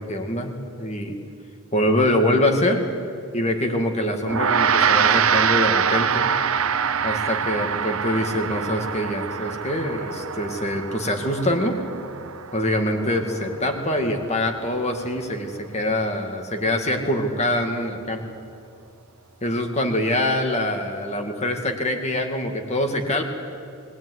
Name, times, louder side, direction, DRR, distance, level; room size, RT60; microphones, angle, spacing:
voice 1, 0.1-1.2 1.7-2.8 3.3-6.3 7.0-11.8 12.5-18.4 19.4-23.2, left 1 dB, 30° left, 4 dB, 2.1 m, -24 dB
Gong, 4.3-13.9, right 7 dB, 65° right, 0.8 m, -24 dB
20.0 x 19.5 x 9.7 m, 2.4 s
head